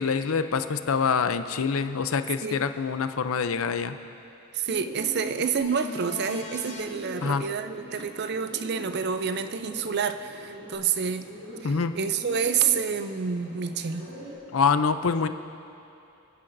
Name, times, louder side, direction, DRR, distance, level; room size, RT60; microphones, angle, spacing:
voice 1, 0.0-4.0 7.2-7.4 11.6-11.9 14.5-15.3, left 5 dB, 75° left, 10 dB, 0.5 m, -25 dB
voice 2, 4.5-11.3 11.6-14.1, right 6 dB, 50° right, 10 dB, 0.5 m, -28 dB
Bird, 4.7-14.3, equal, 85° right, 3.0 m, -42 dB
sound 1, 5.6-6.9 10.7-10.8, left 1 dB, 35° left, 1.1 m, -40 dB
28.5 x 9.8 x 2.6 m, 2.8 s
head